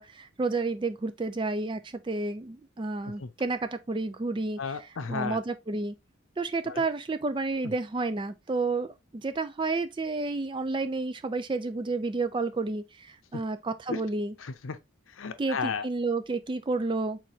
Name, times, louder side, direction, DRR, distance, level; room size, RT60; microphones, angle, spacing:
voice 1, 0.0-4.6 5.1-6.0 6.4-8.9 9.1-14.3 15.4-17.2, right 3 dB, 25° right, 0.3 m, -30 dB
voice 2, 4.6-5.4 6.6-6.8 7.6-7.7 13.9-14.0 14.4-14.8 15.1-15.9, left 5 dB, 75° left, 0.7 m, -34 dB
4.8 x 3.9 x 2.7 m
head